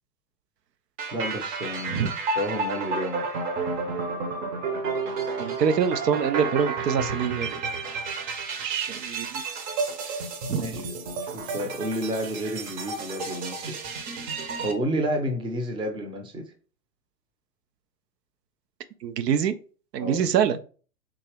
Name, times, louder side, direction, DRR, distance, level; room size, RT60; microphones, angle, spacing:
sound 1, 1.0-14.7, right 4 dB, 40° right, 0.9 m, -31 dB
voice 1, 1.1-2.1 2.4-3.3 10.6-10.9 11.2-13.9 14.6-16.5 20.0-20.3, equal, 10° right, 0.6 m, -30 dB
voice 2, 5.4-7.6 8.6-9.4 10.0-10.2 10.5-10.6 19.0-19.6 19.9-20.6, right 7 dB, 80° right, 0.6 m, -25 dB
3.6 x 2.8 x 3.4 m
hypercardioid pair, 105°, 48 cm